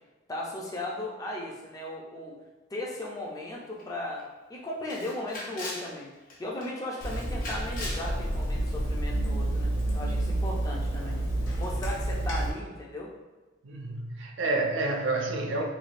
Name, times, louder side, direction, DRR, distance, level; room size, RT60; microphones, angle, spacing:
voice 1, 0.3-2.4 2.7-6.1 6.4-11.2 11.6-13.1, left 1 dB, 20° left, -2 dB, 0.4 m, -36 dB
Camera, 3.8-3.9 4.2-4.3 4.9-5.9 6.3-6.7 7.0-8.1, left 1 dB, 50° left, 0.7 m, -39 dB
Water tap faucet / Sink (filling or washing), 7.0-12.5, right 1 dB, 90° left, 0.8 m, -29 dB
voice 2, 13.6-15.6, right 2 dB, 75° right, 1 dB, 0.4 m, -29 dB
3.2 x 2.3 x 2.5 m, 1.2 s
head